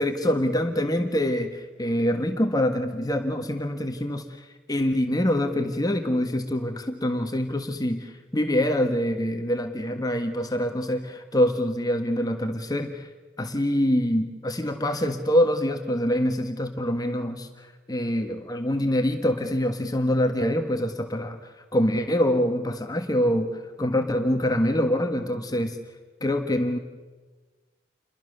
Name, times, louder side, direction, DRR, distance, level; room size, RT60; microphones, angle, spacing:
voice 1, 0.0-13.1 13.4-25.8 26.2-26.8, left 1 dB, 20° left, 5 dB, 1.5 m, -25 dB
29.0 x 22.5 x 6.7 m, 1.4 s
head